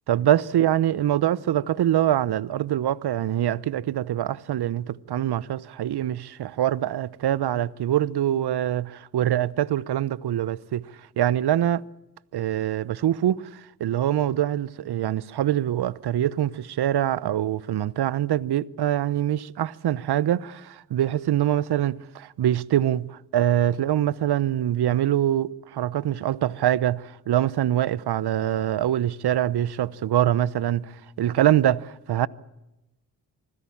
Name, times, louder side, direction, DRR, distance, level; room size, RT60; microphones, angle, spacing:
voice 1, 0.1-10.8 11.2-11.8 12.3-32.3, right 11 dB, 60° right, 0.9 m, -24 dB
24.5 x 16.0 x 8.6 m
supercardioid pair, 50°, 45 cm